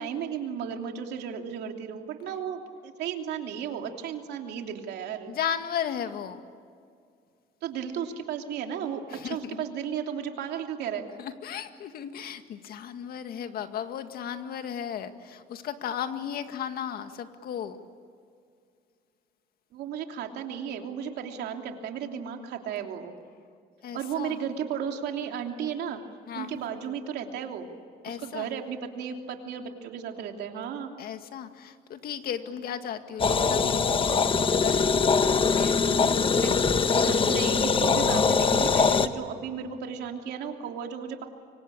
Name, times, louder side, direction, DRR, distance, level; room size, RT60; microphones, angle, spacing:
voice 1, 0.0-5.3 7.6-11.1 19.7-23.1 23.9-26.0 26.3-27.7 28.1-30.9 36.4-36.5 37.0-41.2, right 8 dB, 80° right, 3 dB, 3.1 m, -34 dB
voice 2, 5.3-6.4 9.1-9.6 11.2-17.8 23.8-24.4 26.3-26.5 28.0-28.5 31.0-34.9 35.5-36.3, left 9 dB, 65° left, 8 dB, 2.0 m, -35 dB
sound 1, 33.2-39.1, left 5 dB, 30° left, 1.3 m, -22 dB
26.5 x 24.0 x 8.8 m, 2.2 s
cardioid pair, 110°, 17 cm